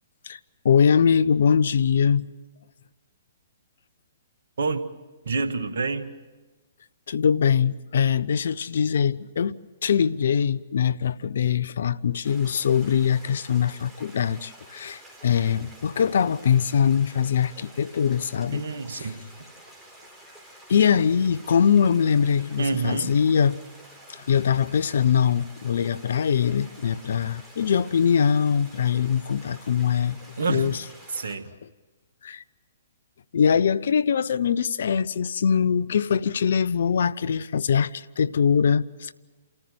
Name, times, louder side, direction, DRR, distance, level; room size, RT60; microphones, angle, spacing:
voice 1, 0.6-2.3 7.1-18.6 20.7-23.6 24.1-30.2 30.5-30.8 32.2-32.4 33.3-39.1, left 7 dB, 65° left, 0.6 m, -22 dB
voice 2, 5.2-6.1 18.5-19.2 22.6-23.1 30.4-30.7 31.1-31.5, right 4 dB, 70° right, 1.7 m, -27 dB
sound 1, 12.2-31.4, right 1 dB, ahead, 4.2 m, -49 dB
28.5 x 14.0 x 7.8 m
figure-of-eight pair, 125°, 0 cm